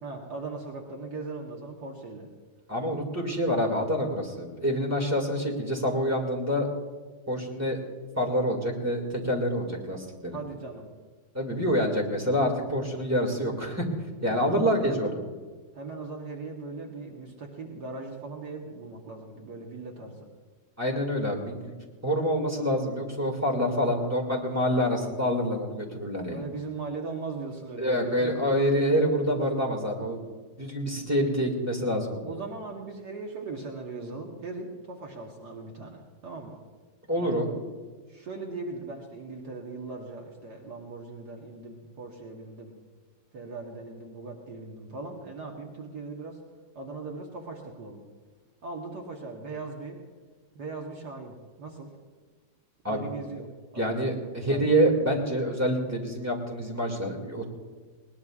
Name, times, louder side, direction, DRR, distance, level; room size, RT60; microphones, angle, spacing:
voice 1, 0.0-2.3 10.3-10.9 14.2-15.2 15.7-20.3 23.8-24.3 24.6-24.8 26.3-28.5 29.3-29.7 30.9-31.1 32.2-36.6 37.1-37.4 38.1-42.8 43.3-46.4 46.8-48.0 48.6-50.0 50.6-51.9 52.9-54.7, right 3 dB, 60° right, 0 dB, 1.9 m, -39 dB
voice 2, 2.7-6.7 7.3-7.8 8.2-10.4 11.3-13.9 14.2-15.2 20.8-21.7 22.0-26.4 27.8-30.2 30.6-32.3 37.1-37.5 52.8-53.1 53.8-57.4, equal, 10° right, 0 dB, 2.1 m, -27 dB
20.5 x 19.0 x 2.4 m, 1.5 s
omnidirectional pair, 2.0 m